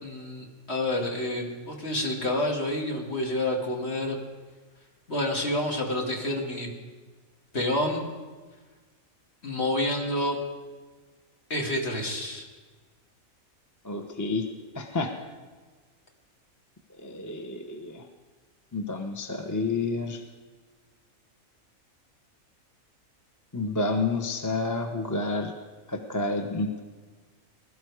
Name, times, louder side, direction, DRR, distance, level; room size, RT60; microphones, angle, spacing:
voice 1, 0.0-4.2 5.1-6.7 7.5-8.0 9.4-10.4 11.5-12.4, left 1 dB, 50° left, 0 dB, 2.4 m, -28 dB
voice 2, 13.8-14.4 14.7-15.1 17.0-18.0 18.7-20.2 23.5-25.5 25.9-26.8, left 3 dB, 15° left, 4 dB, 0.9 m, -29 dB
21.0 x 12.5 x 4.8 m, 1.4 s
omnidirectional pair, 1.4 m